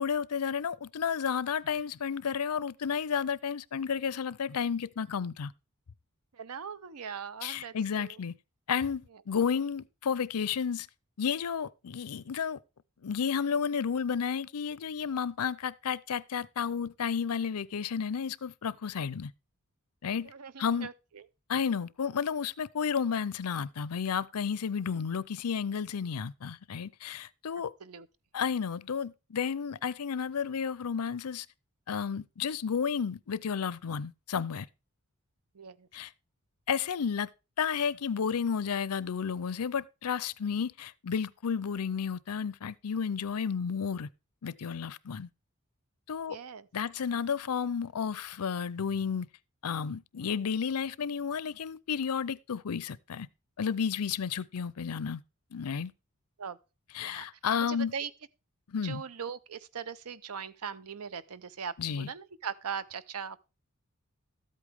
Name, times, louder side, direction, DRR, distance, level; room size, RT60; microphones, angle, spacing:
voice 1, 0.0-5.5 7.4-8.3 8.7-10.9 11.2-12.6 13.0-19.3 20.0-20.3 20.6-20.9 21.5-27.7 28.3-31.5 31.9-34.7 35.9-36.1 36.7-37.3 37.6-44.1 44.4-45.3 46.1-46.4 46.7-49.3 49.6-53.3 53.6-55.2 55.5-55.9 56.9-57.9 58.7-59.0 61.8-62.1, left 6 dB, 85° left, 0.5 m, -32 dB
voice 2, 6.3-8.1 20.2-21.2 27.8-28.1 35.5-35.9 46.3-46.7 56.4-56.6 57.0-57.3 57.7-58.1 58.8-63.4, right 7 dB, 80° right, 0.7 m, -40 dB
13.0 x 8.4 x 3.5 m
head